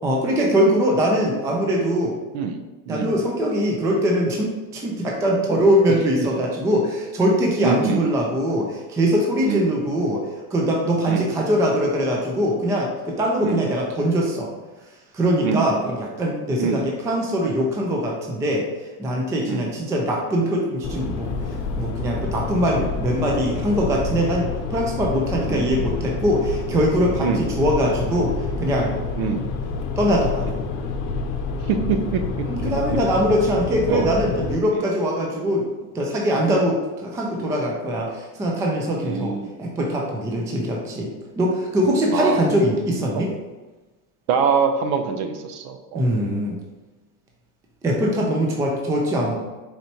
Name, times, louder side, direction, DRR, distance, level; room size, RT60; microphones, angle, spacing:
voice 1, 0.0-2.2 2.9-14.5 15.1-18.7 19.0-21.3 21.8-28.9 30.0-30.6 32.5-35.7 35.9-39.3 39.6-43.3 45.9-46.6 47.8-49.4, equal, 5° right, -1 dB, 0.3 m, -22 dB
voice 2, 7.6-8.0 9.5-9.7 11.1-11.3 13.4-13.7 15.4-15.7 16.6-16.8 19.5-19.7 25.5-25.7 27.2-27.4 29.2-29.5 31.7-32.2 33.9-34.1 34.7-34.9 36.5-36.7 39.0-39.5 42.1-42.4 43.1-43.2 44.3-46.1, right 6 dB, 55° right, 7 dB, 0.7 m, -24 dB
sound 1, 20.8-34.6, left 4 dB, 65° left, 0.8 m, -28 dB
4.3 x 2.6 x 4.4 m, 1.2 s
supercardioid pair, 130°, 47 cm